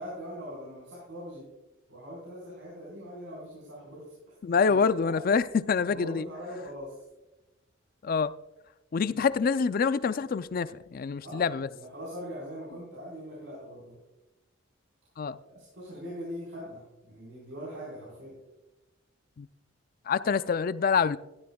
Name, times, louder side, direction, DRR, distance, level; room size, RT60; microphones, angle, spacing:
voice 1, 0.0-1.5 1.9-4.0 4.7-5.2 5.8-7.0 9.0-9.2 11.2-14.0 15.5-18.3, equal, 65° right, 4.4 m, -41 dB
voice 2, 4.4-6.3 8.0-8.3 8.9-11.7 15.2-15.4 19.4-19.5 20.1-21.2, left 5 dB, 45° left, 0.4 m, -26 dB
13.0 x 13.0 x 2.3 m
head